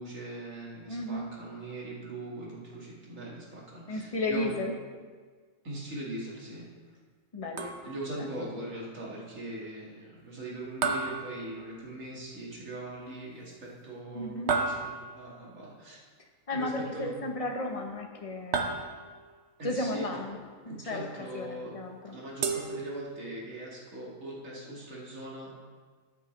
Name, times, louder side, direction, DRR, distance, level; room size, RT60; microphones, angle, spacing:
voice 1, 0.0-4.5 5.6-6.7 7.8-16.0 16.5-17.1 19.6-20.1 20.7-21.7 22.1-25.6, right 1 dB, 80° right, -4 dB, 2.4 m, -41 dB
voice 2, 0.9-1.3 3.9-4.7 7.3-7.8 8.2-8.4 14.1-14.5 16.5-18.7 19.6-20.4 20.6-21.1 21.3-22.2, left 1 dB, 30° left, 2 dB, 1.0 m, -34 dB
sound 1, 7.6-8.2 10.8-12.1 14.5-15.4 18.5-19.3 22.4-23.4, right 4 dB, 60° right, 1.0 m, -33 dB
12.5 x 8.1 x 3.2 m, 1.5 s
omnidirectional pair, 1.4 m